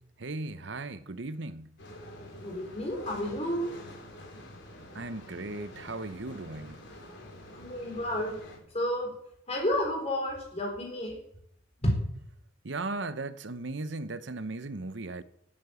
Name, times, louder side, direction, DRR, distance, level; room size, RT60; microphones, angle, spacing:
voice 1, 0.2-1.7 4.9-6.8 12.6-15.2, right 2 dB, 65° right, 0.9 m, -37 dB
sound 1, 1.8-8.6, left 1 dB, 60° left, 4.7 m, -47 dB
voice 2, 2.4-3.7 7.5-8.4 8.7-9.1 9.5-11.2 11.8-11.9, left 1 dB, 30° left, 4.2 m, -31 dB
17.5 x 8.7 x 7.1 m
head